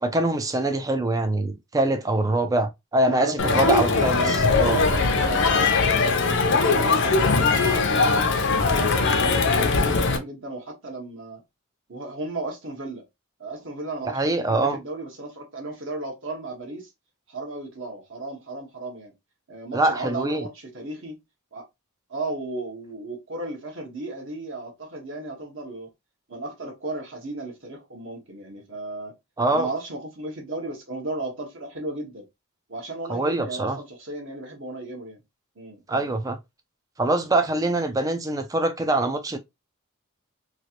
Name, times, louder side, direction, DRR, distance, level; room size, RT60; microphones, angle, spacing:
voice 1, 0.0-4.8 14.1-14.8 19.7-20.5 29.4-29.7 33.1-33.8 35.9-36.4 37.0-39.4, right 2 dB, 15° right, 0.3 m, -24 dB
voice 2, 3.0-3.7 4.2-5.6 6.2-8.1 8.4-11.4 11.9-13.0 13.4-16.9 17.3-19.1 19.5-21.2 21.5-21.6 22.1-25.9 26.3-29.1 29.5-32.2 32.7-35.2 35.6-36.1, right 2 dB, 60° right, 1.2 m, -34 dB
Crowd, 3.4-10.2, left 4 dB, 50° left, 0.5 m, -21 dB
3.1 x 2.5 x 2.8 m
head